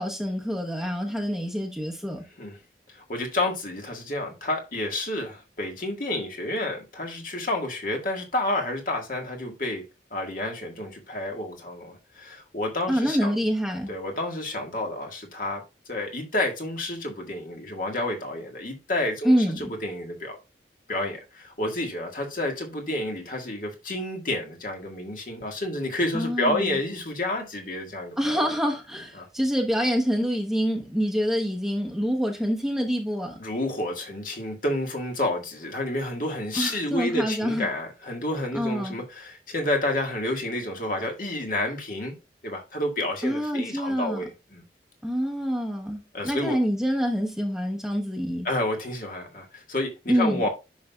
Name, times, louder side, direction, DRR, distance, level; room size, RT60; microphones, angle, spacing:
voice 1, 0.0-2.2 12.9-13.9 19.2-19.7 26.1-26.8 28.2-33.4 36.6-37.7 38.5-39.0 43.2-44.2 45.0-48.5 50.1-50.4, equal, 5° right, 1.0 m, -26 dB
voice 2, 2.9-9.8 10.1-13.4 13.9-15.6 15.9-20.4 20.9-28.5 29.2-29.3 33.4-42.2 42.4-44.6 46.1-46.6 48.4-50.5, left 1 dB, 50° left, 1.8 m, -30 dB
10.0 x 5.6 x 2.4 m
head